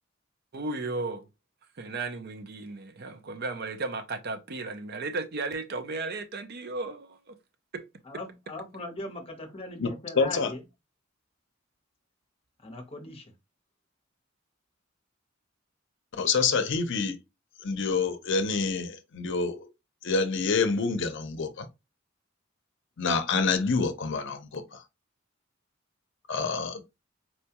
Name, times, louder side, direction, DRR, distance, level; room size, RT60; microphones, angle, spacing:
voice 1, 0.5-1.3 1.8-7.4 7.7-7.8 8.1-8.2, right 3 dB, 50° right, 0.5 m, -35 dB
voice 2, 8.0-10.6 12.6-13.3, left 1 dB, 30° left, 0.9 m, -39 dB
voice 3, 10.2-10.5 16.2-17.2 17.6-19.7 20.0-21.7 23.0-24.8 26.3-26.8, left 4 dB, 65° left, 0.6 m, -27 dB
4.2 x 2.3 x 2.8 m
head